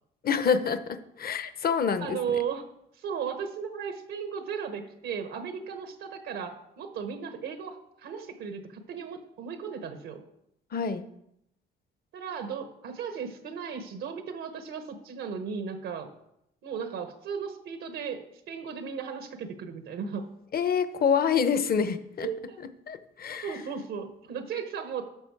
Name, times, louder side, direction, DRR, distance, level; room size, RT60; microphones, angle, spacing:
voice 1, 0.2-2.2 10.7-11.0 20.5-22.3 22.9-23.5, left 6 dB, 50° left, 11 dB, 0.8 m, -26 dB
voice 2, 2.0-2.7 2.9-10.2 12.1-16.1 16.6-20.2 22.2-22.6 23.4-25.0, right 6 dB, 85° right, 8 dB, 1.1 m, -36 dB
12.5 x 6.3 x 4.6 m, 0.79 s
cardioid pair, 90°, 20 cm